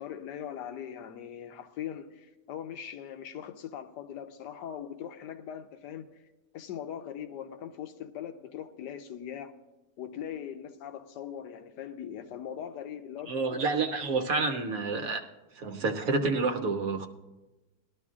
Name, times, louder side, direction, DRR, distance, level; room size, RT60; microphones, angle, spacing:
voice 1, 0.0-6.1 6.5-9.5 10.0-13.4, left 9 dB, 85° left, 1.3 m, -40 dB
voice 2, 13.3-15.2 15.6-17.1, right 3 dB, 65° right, 1.1 m, -29 dB
19.5 x 12.0 x 2.4 m
omnidirectional pair, 1.8 m